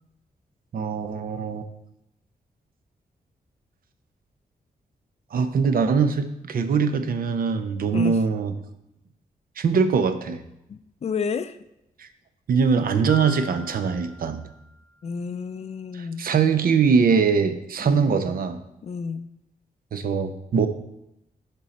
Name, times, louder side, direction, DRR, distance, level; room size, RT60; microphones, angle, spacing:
voice 1, 0.7-1.7 5.3-8.5 9.6-10.4 12.0-12.1 12.5-14.5 16.2-18.6 19.9-20.7, right 5 dB, 70° right, 9 dB, 0.7 m, -22 dB
voice 2, 10.7-11.6 15.0-16.3 17.8-18.2 18.8-19.3, left 5 dB, 45° left, 11 dB, 0.4 m, -31 dB
Piano, 13.1-15.0, left 2 dB, 5° left, 0.9 m, -40 dB
11.0 x 4.2 x 4.2 m, 0.86 s
wide cardioid pair, 110°, 15 cm